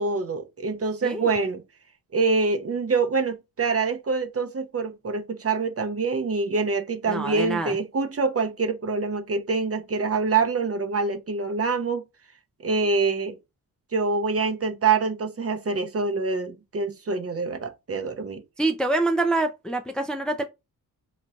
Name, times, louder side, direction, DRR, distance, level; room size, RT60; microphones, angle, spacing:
voice 1, 0.0-1.6 2.1-12.0 12.6-13.4 13.9-18.4, right 4 dB, 40° right, 0.8 m, -25 dB
voice 2, 7.1-7.8 18.6-20.4, right 2 dB, ahead, 0.5 m, -25 dB
4.0 x 3.1 x 2.4 m
cardioid pair, 80°, 38 cm